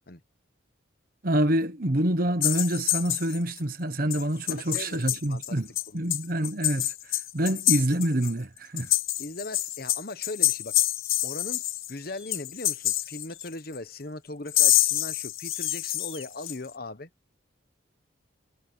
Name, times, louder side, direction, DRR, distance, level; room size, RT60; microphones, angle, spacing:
voice 1, 1.2-5.7 5.9-8.9, right 1 dB, 45° right, 1.2 m, -27 dB
sound 1, 2.4-3.6 4.1-4.2 4.5-5.5 5.8-8.3 8.6-11.9 12.3-13.8 14.5-16.6, left 15 dB, 85° left, 1.0 m, -27 dB
voice 2, 4.5-5.6 5.9-6.2 9.2-10.8 11.2-11.6 11.9-17.1, left 2 dB, 50° left, 1.1 m, -39 dB
sound 2, 12.1-12.5 13.3-13.7 13.9-14.3 14.8-15.0 15.5-16.3, left 5 dB, 25° left, 2.3 m, -52 dB
head